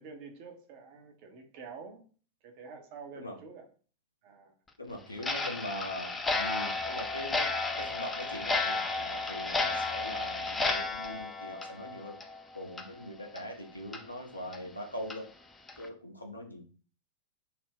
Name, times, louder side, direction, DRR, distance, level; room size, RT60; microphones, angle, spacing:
voice 1, 0.0-2.0 2.4-3.7 4.2-4.5, right 5 dB, 45° right, 0.5 m, -48 dB
voice 2, 4.8-7.5 7.8-12.2 12.5-15.3 15.8-16.7, left 1 dB, 85° left, 0.5 m, -41 dB
Clock, 5.2-12.4 12.7-12.9 13.3-13.4 13.9-14.0 14.5-14.6 15.1-15.2 15.7-15.9, left 3 dB, 15° left, 0.3 m, -33 dB
2.4 x 2.0 x 3.4 m
figure-of-eight pair, 90°, 0 cm